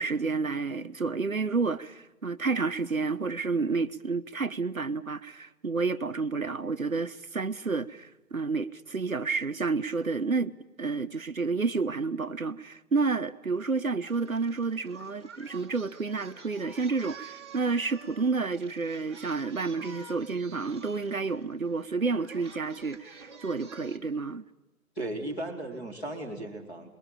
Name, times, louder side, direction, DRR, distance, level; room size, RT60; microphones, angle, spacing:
voice 1, 0.0-10.5 10.8-24.4, right 4 dB, 70° right, 1.1 m, -30 dB
Singing, 14.0-24.0, right 4 dB, 20° right, 1.6 m, -49 dB
voice 2, 25.0-27.0, right 1 dB, 10° left, 2.3 m, -36 dB
26.0 x 21.5 x 8.9 m
figure-of-eight pair, 155°, 43 cm